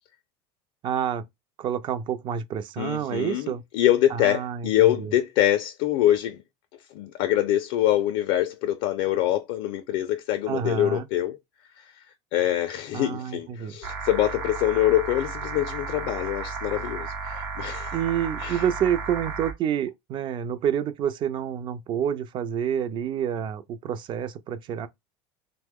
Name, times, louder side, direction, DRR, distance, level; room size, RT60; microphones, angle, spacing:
voice 1, 0.8-1.2 1.6-3.6 4.1-5.1 10.5-11.1 12.9-13.7 17.9-24.9, right 9 dB, 35° right, 0.4 m, -28 dB
voice 2, 2.8-6.4 6.9-11.4 11.8-12.1 12.3-18.0 18.4-18.6, left 13 dB, 65° left, 0.4 m, -24 dB
sound 1, 13.8-19.5, right 4 dB, 80° right, 1.0 m, -33 dB
2.9 x 2.1 x 3.5 m
supercardioid pair, 125°, 13 cm